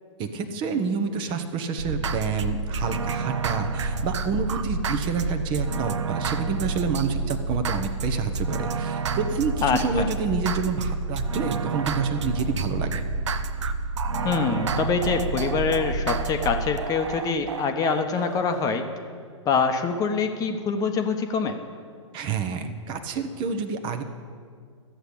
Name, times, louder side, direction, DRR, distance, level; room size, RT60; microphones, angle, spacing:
voice 1, 0.2-13.0 22.1-24.0, right 5 dB, 30° right, 7 dB, 1.0 m, -28 dB
sound 1, 1.8-18.6, right 3 dB, 65° right, 0.8 m, -29 dB
voice 2, 9.6-10.1 14.2-18.9 19.4-21.6, left 5 dB, 20° left, 7 dB, 1.0 m, -25 dB
13.0 x 8.0 x 8.6 m, 2.1 s
figure-of-eight pair, 115°, 16 cm